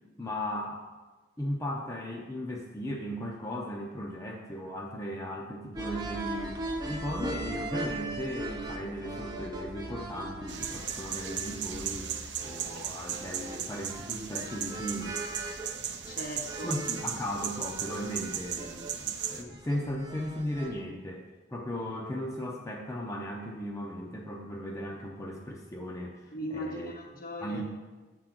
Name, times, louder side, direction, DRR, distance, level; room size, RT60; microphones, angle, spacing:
voice 1, 0.2-0.9 1.4-12.1 12.4-15.2 16.6-26.9 27.4-27.7, equal, 15° left, -1 dB, 0.6 m, -37 dB
sound 1, 5.7-20.8, right 2 dB, 25° right, 0.7 m, -40 dB
sound 2, 10.5-19.4, right 9 dB, 70° right, 0.5 m, -37 dB
voice 2, 16.1-16.8 26.3-27.7, equal, 55° left, 2 dB, 1.0 m, -38 dB
7.6 x 3.8 x 5.9 m, 1.2 s
head